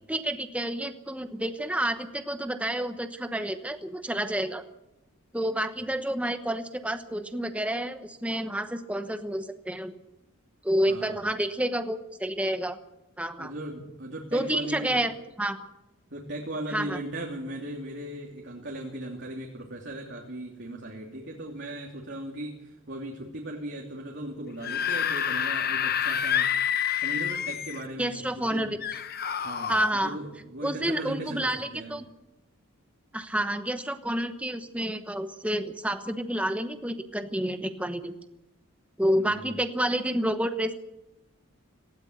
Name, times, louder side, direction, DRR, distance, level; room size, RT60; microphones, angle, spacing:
voice 1, 0.1-4.6 5.3-9.9 10.6-12.8 13.2-13.5 14.3-15.6 16.7-17.0 28.0-28.7 29.7-30.2 30.6-32.0 33.1-38.2 39.0-40.7, right 1 dB, 5° right, 8 dB, 1.0 m, -29 dB
voice 2, 10.9-11.2 13.4-15.0 16.1-26.7 27.0-28.8 29.4-31.9 39.2-39.5, right 1 dB, 50° right, -1 dB, 3.0 m, -38 dB
Screaming / Screech, 24.5-27.9 28.8-29.9, left 9 dB, 45° left, 0.9 m, -28 dB
18.5 x 17.0 x 8.0 m, 0.89 s
head